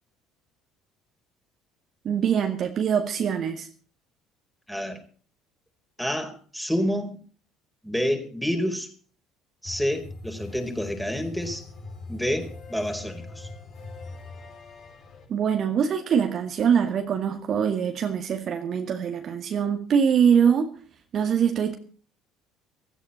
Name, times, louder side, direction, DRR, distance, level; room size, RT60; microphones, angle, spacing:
voice 1, 2.0-3.7 15.3-20.7 21.1-21.7, right 7 dB, 45° right, 2.0 m, -23 dB
voice 2, 4.7-5.0 6.0-7.2 7.8-8.9 9.6-11.6 12.1-13.5, equal, 5° left, 4.5 m, -28 dB
sound 1, 9.6-15.3, left 2 dB, 50° left, 7.1 m, -41 dB
16.5 x 15.0 x 4.3 m
figure-of-eight pair, 55°, 0 cm